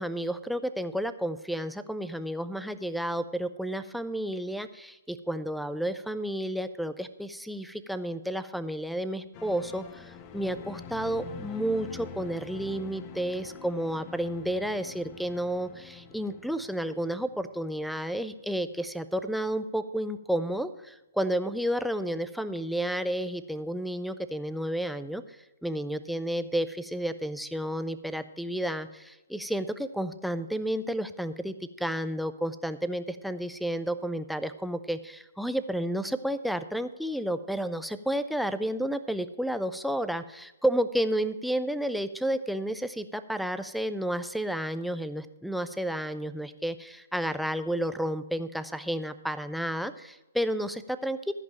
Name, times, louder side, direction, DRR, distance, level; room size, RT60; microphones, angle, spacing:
voice 1, 0.0-25.2 25.6-51.3, right 1 dB, ahead, 10 dB, 0.5 m, -31 dB
sound 1, 9.3-18.5 18.8-18.9, left 6 dB, 30° left, 0.8 m, -46 dB
14.0 x 5.3 x 7.3 m, 1.0 s
hypercardioid pair, 130°, 0 cm